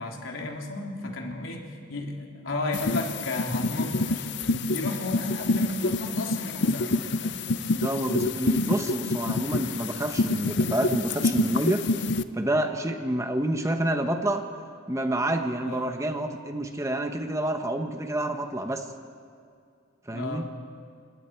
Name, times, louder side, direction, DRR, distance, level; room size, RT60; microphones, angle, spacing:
voice 1, 0.0-6.9 7.2-7.4 15.6-16.0 20.1-20.5, left 2 dB, 75° left, 1 dB, 3.1 m, -34 dB
sound 1, 2.7-12.2, left 2 dB, 60° left, 0.7 m, -27 dB
voice 2, 7.8-11.8 12.3-14.5 14.9-18.8 20.1-20.5, right 1 dB, 15° right, 5 dB, 1.2 m, -28 dB
28.5 x 26.5 x 4.6 m, 2.3 s
head